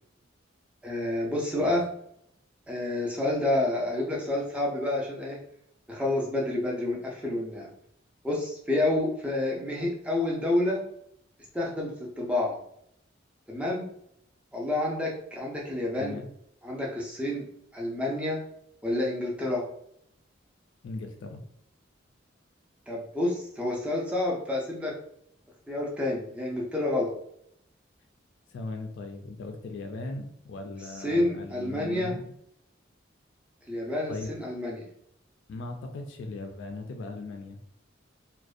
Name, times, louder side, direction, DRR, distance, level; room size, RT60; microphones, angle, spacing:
voice 1, 0.8-1.8 2.7-5.4 5.9-7.7 8.2-10.8 11.5-12.6 13.5-13.8 14.5-16.2 16.6-17.5 17.7-18.4 18.8-19.6 22.9-24.9 25.7-27.1 31.0-32.2 33.7-34.9, left 1 dB, 5° right, -3 dB, 0.4 m, -29 dB
voice 2, 20.8-21.4 28.5-32.3 34.1-34.3 35.5-37.6, left 3 dB, 65° left, 4 dB, 0.3 m, -38 dB
2.5 x 2.1 x 2.4 m, 0.72 s
head